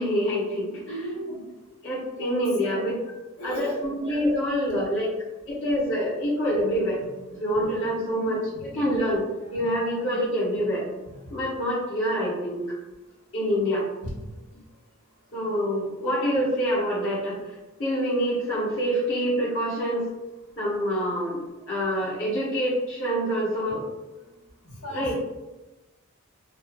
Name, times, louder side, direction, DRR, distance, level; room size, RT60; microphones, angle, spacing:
voice 1, 0.0-0.7 1.8-2.9 3.4-5.1 5.5-7.0 7.3-9.2 9.5-10.8 11.3-12.6 13.3-13.8 15.3-17.4 17.8-20.1 20.6-23.8 24.9-25.1, equal, 60° left, -9 dB, 0.9 m, -26 dB
voice 2, 0.7-1.3 2.0-2.8 3.4-3.8 7.5-8.6 9.3-10.0 11.0-11.4 13.4-13.5 14.0-14.3 22.4-22.5 23.6-23.8 24.6-25.3, equal, 90° left, -6 dB, 1.2 m, -38 dB
2.7 x 2.3 x 2.4 m, 1.1 s
head